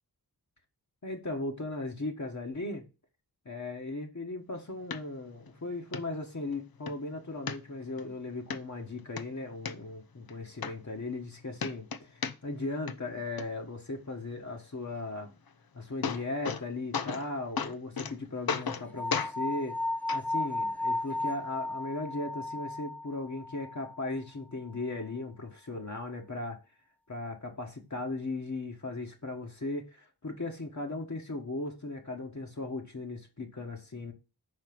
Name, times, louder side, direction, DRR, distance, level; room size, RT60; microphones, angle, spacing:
voice 1, 1.0-2.8 3.4-15.3 15.7-19.8 20.1-26.6 27.1-34.1, left 2 dB, 45° left, 1.5 m, -37 dB
sound 1, 4.9-5.0 5.5-5.6 5.9-6.0 6.5-7.0 7.5-8.0 8.5-8.6 9.0-9.7 10.3-10.4 10.6-11.3 11.6-12.6 12.9-13.4 15.5-15.6 15.8-16.6 16.9-17.3 17.6-18.1 18.5-18.8 19.1-19.3 20.1-20.2 21.1-21.2, left 6 dB, 65° left, 0.8 m, -34 dB
sound 2, 19.0-24.1, left 2 dB, 5° left, 0.3 m, -34 dB
5.7 x 4.5 x 5.9 m
wide cardioid pair, 70°, 39 cm